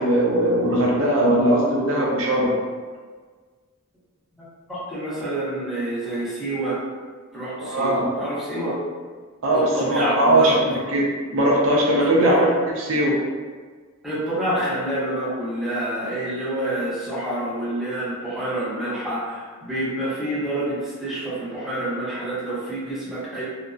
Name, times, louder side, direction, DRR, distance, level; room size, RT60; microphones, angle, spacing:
voice 1, 0.0-2.5 7.6-8.1 9.4-11.0 11.3-13.2, right 1 dB, 65° right, -4 dB, 0.5 m, -20 dB
voice 2, 4.4-6.8 7.3-8.8 9.5-10.8 12.0-12.4 14.0-23.4, right 1 dB, ahead, -12 dB, 0.8 m, -27 dB
2.5 x 2.1 x 2.4 m, 1.5 s
head